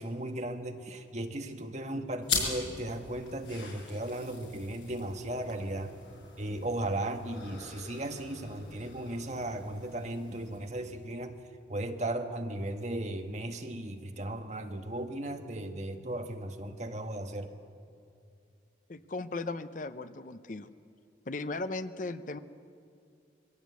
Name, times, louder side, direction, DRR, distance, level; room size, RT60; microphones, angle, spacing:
voice 1, 0.0-5.9 6.4-11.3 11.7-17.5, right 1 dB, 40° right, 5 dB, 1.3 m, -36 dB
sound 1, 2.2-11.2, left 5 dB, 80° left, 5.5 m, -41 dB
voice 2, 18.9-20.7 21.3-22.4, left 3 dB, 45° left, 12 dB, 0.6 m, -37 dB
22.0 x 16.5 x 8.3 m, 2.4 s
head